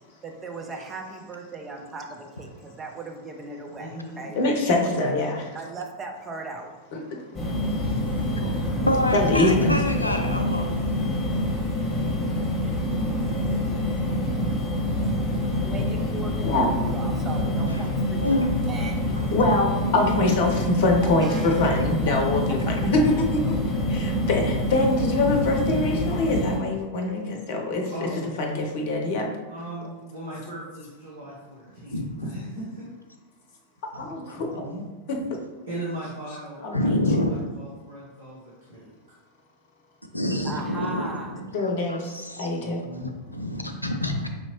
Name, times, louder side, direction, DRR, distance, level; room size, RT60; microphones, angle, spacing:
voice 1, 0.2-4.4 4.7-4.9 5.5-6.7 15.6-19.3 21.0-21.8 22.3-22.4 40.4-41.4, right 3 dB, 20° right, 2 dB, 0.6 m, -37 dB
voice 2, 3.8-4.3 8.4-8.9 27.9-28.3 29.5-32.7 34.5-34.8 35.7-38.9 42.6-43.1, right 1 dB, 70° right, -9 dB, 1.1 m, -38 dB
voice 3, 4.4-5.5 7.1-7.2 9.1-9.8 16.4-16.7 19.3-23.4 23.9-28.1 28.4-29.3 33.9-34.7 35.1-35.2 36.6-37.0 41.5-42.8, left 2 dB, 50° left, 2 dB, 0.7 m, -24 dB
sound 1, 7.3-26.6, left 1 dB, 20° left, 1.3 m, -26 dB
voice 4, 7.8-8.2 8.9-10.7 18.2-18.5 31.9-32.3 33.9-34.1 34.5-34.6 36.7-37.3 40.1-42.6 42.9-44.3, left 1 dB, 85° left, 5 dB, 0.4 m, -27 dB
5.5 x 2.8 x 3.0 m, 1.2 s
figure-of-eight pair, 90°, 0 cm